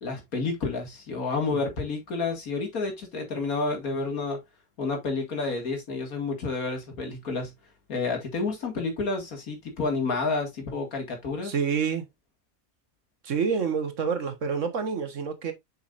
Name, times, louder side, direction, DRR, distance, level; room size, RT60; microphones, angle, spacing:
voice 1, 0.0-4.4 4.8-7.5 7.9-11.5, left 3 dB, 85° left, 2.6 m, -30 dB
voice 2, 11.4-12.0 13.2-15.5, right 6 dB, 60° right, 1.5 m, -27 dB
7.3 x 5.6 x 2.5 m
omnidirectional pair, 1.5 m